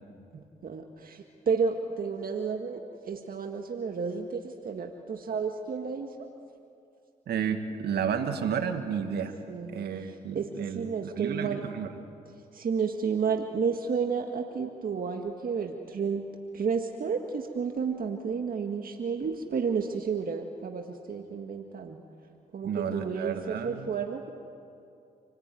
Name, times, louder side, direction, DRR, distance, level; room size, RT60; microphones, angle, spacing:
voice 1, 0.3-6.3 9.5-9.8 10.3-11.6 12.5-16.3 16.5-22.0 22.5-24.3, right 5 dB, 65° right, 4 dB, 1.8 m, -31 dB
voice 2, 7.3-9.4 9.7-11.9 22.6-23.9, right 7 dB, 80° right, 7 dB, 1.9 m, -31 dB
28.5 x 19.5 x 9.3 m, 2.5 s
supercardioid pair, 50°, 16 cm